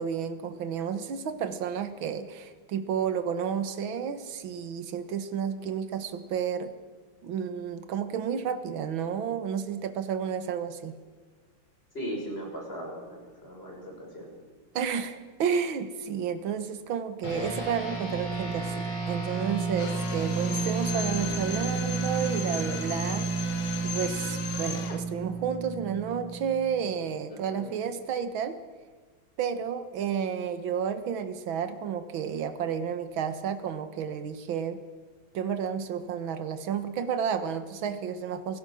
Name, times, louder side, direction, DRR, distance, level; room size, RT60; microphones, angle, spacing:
voice 1, 0.0-6.7 7.2-11.0 14.8-23.3 23.8-28.6 29.4-34.8 35.3-38.6, right 7 dB, 65° right, 10 dB, 2.1 m, -31 dB
voice 2, 11.9-14.3 27.3-27.7, equal, 25° left, -1 dB, 6.7 m, -38 dB
sound 1, 17.2-26.9, right 4 dB, 90° left, 5.7 m, -32 dB
Drill, 19.8-25.1, left 6 dB, 55° left, 2.0 m, -37 dB
27.5 x 17.0 x 6.4 m, 1.4 s
omnidirectional pair, 2.4 m